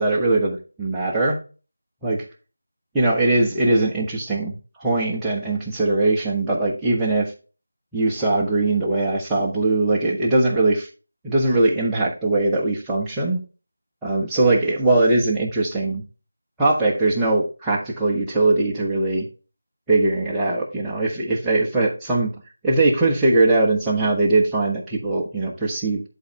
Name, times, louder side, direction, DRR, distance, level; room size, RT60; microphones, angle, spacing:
voice 1, 0.0-1.4 2.0-2.2 2.9-7.3 7.9-10.9 11.2-13.4 14.0-16.0 16.6-19.3 19.9-22.3 22.6-26.1, right 2 dB, 5° right, -6 dB, 1.2 m, -21 dB
11.5 x 4.0 x 3.4 m, 0.34 s
figure-of-eight pair, 170°, 0 cm